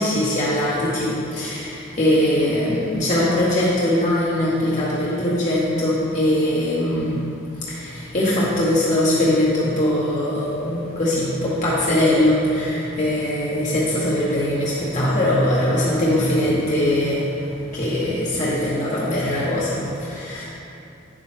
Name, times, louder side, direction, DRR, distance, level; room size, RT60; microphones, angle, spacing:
voice 1, 0.0-7.2 7.7-17.3 17.7-20.5, left 1 dB, 40° left, -7 dB, 1.0 m, -21 dB
9.3 x 7.3 x 3.3 m, 2.7 s
head